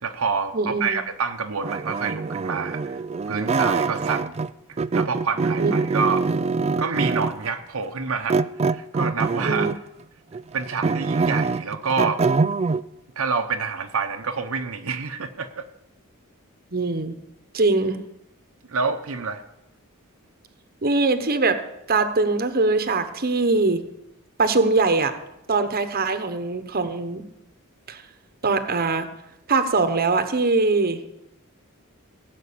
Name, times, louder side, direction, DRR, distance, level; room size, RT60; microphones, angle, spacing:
voice 1, 0.0-3.0 3.3-4.3 4.9-6.2 6.8-9.7 10.5-12.2 13.2-15.7 18.7-19.4, right 5 dB, 70° right, 4 dB, 0.9 m, -27 dB
voice 2, 0.5-1.0 5.6-6.0 9.4-9.7 16.7-17.1 17.5-18.0 20.8-21.6 21.9-23.8 24.4-25.1 25.5-27.2 27.9-28.0 28.4-29.1 29.5-31.0, right 3 dB, 45° right, 9 dB, 1.1 m, -22 dB
sound 1, 1.6-4.5 4.8-7.5 8.3-9.9 10.3-12.8, right 4 dB, 30° right, 0.4 m, -24 dB
16.5 x 6.1 x 8.5 m, 0.83 s
head